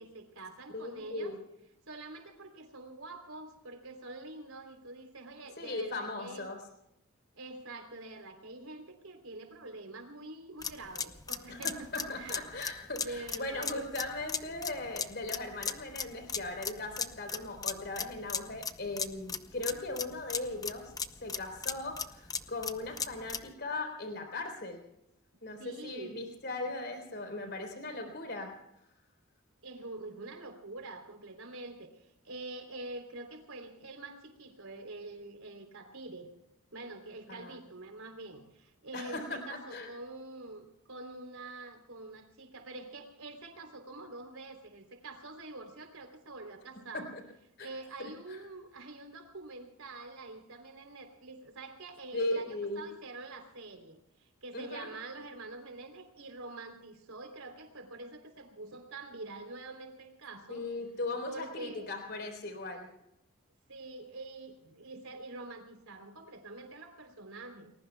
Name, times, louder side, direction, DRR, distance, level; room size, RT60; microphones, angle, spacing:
voice 1, 0.0-1.3 1.9-6.5 7.3-12.4 13.0-14.1 25.6-26.2 29.6-36.3 36.7-47.1 47.6-60.6 61.3-61.9 63.7-67.7, right 2 dB, 80° right, 4 dB, 3.5 m, -46 dB
voice 2, 0.7-1.4 5.6-6.6 11.5-20.9 21.2-24.8 25.4-28.5 37.3-37.6 38.9-39.9 46.9-47.2 47.6-47.7 48.3-48.4 52.1-52.8 54.5-54.9 60.5-62.9, left 2 dB, 50° left, 4 dB, 4.0 m, -38 dB
sound 1, 10.6-23.5, left 6 dB, 15° left, 0.7 m, -37 dB
30.0 x 21.0 x 2.3 m, 0.83 s
head